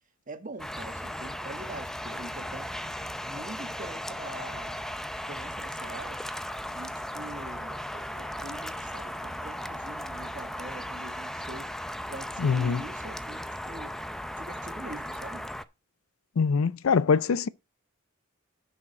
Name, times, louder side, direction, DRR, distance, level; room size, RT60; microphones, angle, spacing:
voice 1, 0.3-2.7 3.2-6.2 6.7-14.0 14.4-15.5, right 2 dB, 40° right, 1.3 m, -44 dB
sound 1, 0.6-15.6, equal, ahead, 0.5 m, -37 dB
voice 2, 12.4-12.8 16.4-17.5, left 5 dB, 70° left, 0.5 m, -23 dB
10.0 x 6.3 x 4.2 m
head